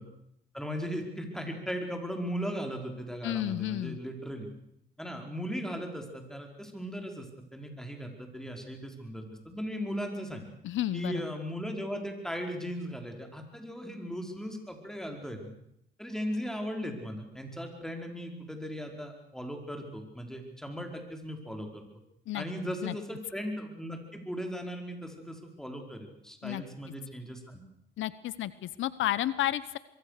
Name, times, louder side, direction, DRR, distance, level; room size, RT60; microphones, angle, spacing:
voice 1, 0.5-4.5 5.0-10.4 10.9-15.5 16.0-21.8 22.3-27.6, equal, ahead, 3 dB, 4.9 m, -37 dB
voice 2, 3.2-4.0 10.6-11.2 22.3-22.4 22.8-22.9 26.4-26.6 28.0-29.8, left 13 dB, 75° left, 17 dB, 0.9 m, -31 dB
24.0 x 23.0 x 6.7 m, 0.76 s
cardioid pair, 90°, 20 cm